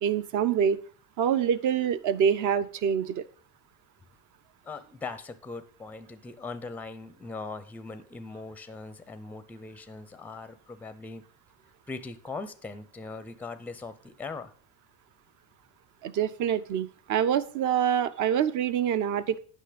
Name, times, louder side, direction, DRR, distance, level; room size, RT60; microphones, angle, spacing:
voice 1, 0.0-0.8 1.2-3.2 16.0-19.4, right 8 dB, 45° right, 13 dB, 0.7 m, -26 dB
voice 2, 4.6-11.2 11.9-14.5, left 3 dB, 5° left, 12 dB, 0.5 m, -40 dB
8.4 x 5.6 x 5.0 m, 0.43 s
supercardioid pair, 120°, 41 cm